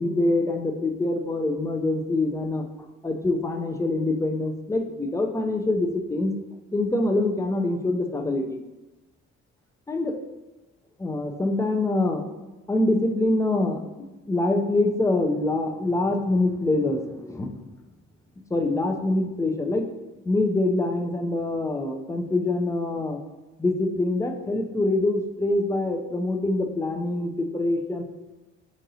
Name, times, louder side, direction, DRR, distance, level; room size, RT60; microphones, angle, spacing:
voice 1, 0.0-2.6 3.0-6.3 6.7-8.6 9.9-10.2 11.0-12.2 12.7-13.8 14.3-17.6 18.5-19.9 20.3-23.2 23.6-28.0, left 2 dB, 10° left, 3 dB, 0.4 m, -25 dB
4.1 x 3.7 x 2.7 m, 1.1 s
cardioid pair, 90°, 30 cm